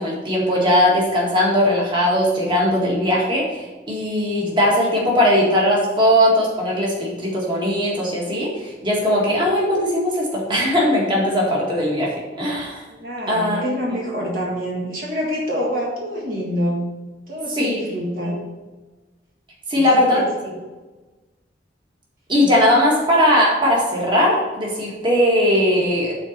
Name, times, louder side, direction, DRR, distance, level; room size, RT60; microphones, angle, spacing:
voice 1, 0.0-12.8 13.3-13.6 17.6-17.8 18.2-18.4 19.7-20.2 22.3-26.1, equal, 25° right, -4 dB, 1.9 m, -19 dB
voice 2, 12.9-16.9 17.3-18.4 19.7-19.8 20.1-20.3, equal, 55° right, -4 dB, 1.7 m, -26 dB
6.9 x 4.2 x 6.6 m, 1.2 s
head